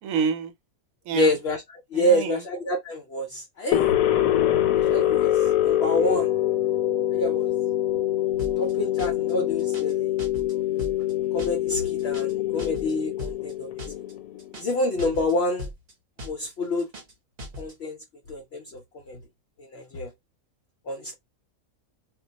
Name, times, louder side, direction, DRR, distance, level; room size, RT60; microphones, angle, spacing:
voice 1, 0.0-0.5 1.0-1.4 1.9-2.4, right 6 dB, 75° right, 1.1 m, -27 dB
voice 2, 1.1-1.6 1.9-3.9 4.7-5.3 5.6-6.3 7.1-7.5 8.6-10.1 11.3-13.7 14.6-15.7 16.2-16.9 17.6-18.0 18.3-18.8 19.1-19.2 19.7-20.1 20.9-21.1, left 1 dB, 65° left, 0.7 m, -27 dB
sound 1, 3.7-14.6, left 13 dB, 80° left, 1.0 m, -24 dB
sound 2, 8.4-8.7 9.0-9.3 9.6-9.9 10.2-10.5 10.8-11.1 11.4-11.7 12.0-12.3 12.6-12.9 13.2-13.5 13.8-14.1 14.4-14.7 15.0-15.3 15.6-15.9 16.2-16.5 16.8-17.1 17.4-17.7, left 1 dB, 45° right, 0.8 m, -38 dB
2.2 x 2.2 x 3.9 m
omnidirectional pair, 1.5 m